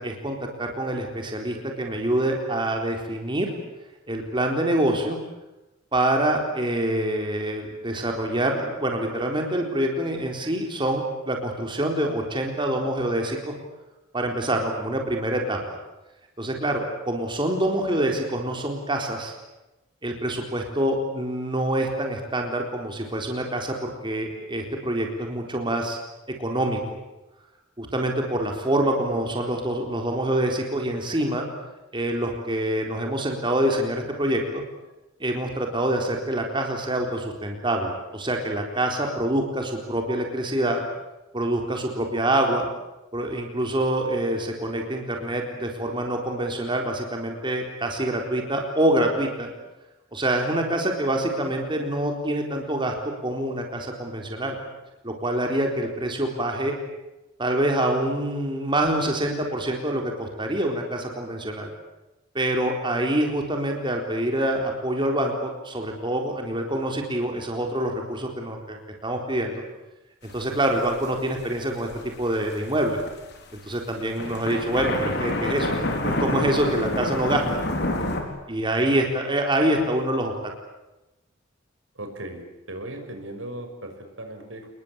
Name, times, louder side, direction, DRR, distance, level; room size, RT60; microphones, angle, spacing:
voice 1, 0.0-3.5 4.1-5.2 5.9-13.5 14.1-15.8 16.4-19.3 20.0-26.0 26.4-27.0 27.8-31.5 31.9-34.6 35.2-40.8 41.3-42.7 43.1-49.5 50.1-52.9 53.2-54.6 55.0-56.8 57.4-61.7 62.3-69.6 70.3-71.9 72.2-73.0 73.7-75.8 76.0-77.4 78.5-80.3, right 1 dB, 25° right, 2 dB, 4.1 m, -26 dB
sound 1, 70.3-71.4 71.8-73.4 73.7-73.8 74.1-78.2, left 1 dB, 60° left, 5.1 m, -28 dB
voice 2, 81.9-84.7, right 1 dB, 75° right, 5 dB, 6.1 m, -38 dB
29.0 x 21.5 x 8.8 m, 1.0 s
head